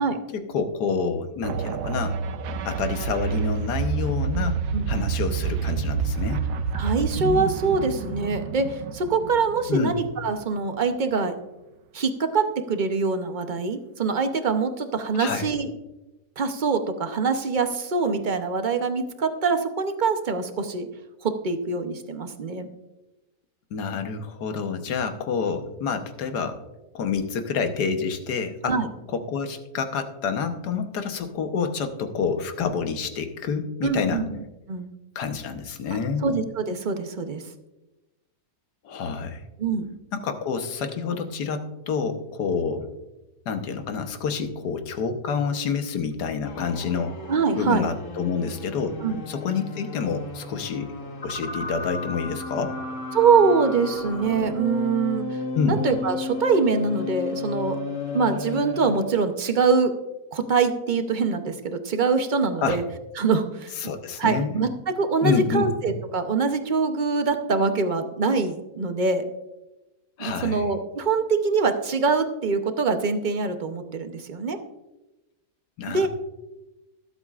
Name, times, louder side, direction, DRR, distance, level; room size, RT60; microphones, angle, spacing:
voice 1, 0.3-2.2 2.6-4.6 4.9-6.4 9.7-10.0 15.1-15.5 23.7-26.6 26.9-28.8 29.1-34.2 35.1-36.3 38.8-39.5 40.1-42.9 43.4-47.2 47.6-49.0 49.3-50.9 51.2-52.8 55.5-55.8 62.6-62.8 63.8-64.5 65.2-65.7 70.2-70.7 75.8-76.1, left 5 dB, 75° left, 7 dB, 1.6 m, -28 dB
sound 1, 1.4-10.5, right 6 dB, 75° right, 1.2 m, -28 dB
voice 2, 6.7-11.3 11.9-15.7 16.4-20.9 21.2-22.7 28.7-28.9 33.8-34.4 34.7-34.9 36.2-37.4 39.6-39.9 47.3-47.9 49.0-49.2 53.1-55.4 55.7-57.8 58.1-59.9 60.3-62.8 63.2-63.7 64.2-69.2 70.2-74.6 75.9-76.1, right 4 dB, 45° right, 7 dB, 0.6 m, -24 dB
sound 2, 46.5-59.2, left 3 dB, 50° left, 1.8 m, -33 dB
20.5 x 8.1 x 2.4 m, 1.0 s
omnidirectional pair, 1.8 m